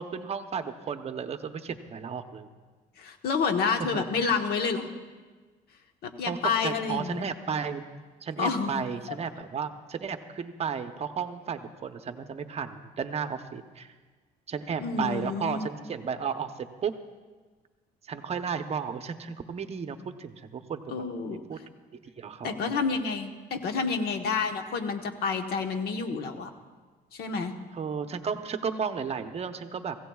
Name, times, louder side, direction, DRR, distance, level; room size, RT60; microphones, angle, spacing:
voice 1, 0.0-2.5 3.9-4.3 6.2-7.8 8.2-13.9 14.5-16.9 18.1-21.0 21.5-21.6 22.2-22.7 27.7-30.0, right 6 dB, 40° right, 8 dB, 0.8 m, -33 dB
voice 2, 3.0-4.9 6.0-7.3 8.4-8.8 14.8-15.7 20.9-21.4 22.4-26.5 27.1-27.5, left 5 dB, 70° left, 6 dB, 1.2 m, -29 dB
23.5 x 16.0 x 2.4 m, 1.4 s
cardioid pair, 110°, 17 cm